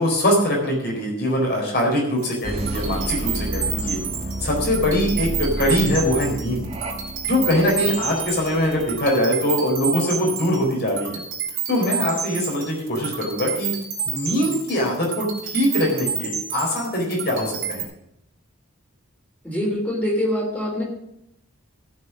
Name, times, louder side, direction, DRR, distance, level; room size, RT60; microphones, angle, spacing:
voice 1, 0.0-4.0 4.4-6.7 7.3-11.2 11.7-13.7 14.1-17.8, equal, 50° left, -1 dB, 4.2 m, -22 dB
sound 1, 2.2-17.8, right 8 dB, 65° right, 3.1 m, -30 dB
sound 2, 2.4-9.0, right 1 dB, 30° right, 1.5 m, -31 dB
voice 2, 19.4-20.8, left 1 dB, 5° left, -2 dB, 3.1 m, -24 dB
15.0 x 6.5 x 6.3 m, 0.78 s
head